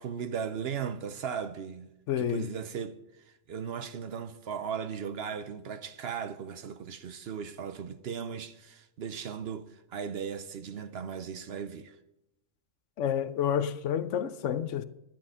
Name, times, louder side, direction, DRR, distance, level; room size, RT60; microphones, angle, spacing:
voice 1, 0.0-1.9 2.2-3.0 3.5-12.0, right 7 dB, 60° right, 0.8 m, -37 dB
voice 2, 2.1-2.5 13.0-14.8, left 9 dB, 75° left, 1.0 m, -29 dB
11.5 x 10.5 x 5.6 m
omnidirectional pair, 1.3 m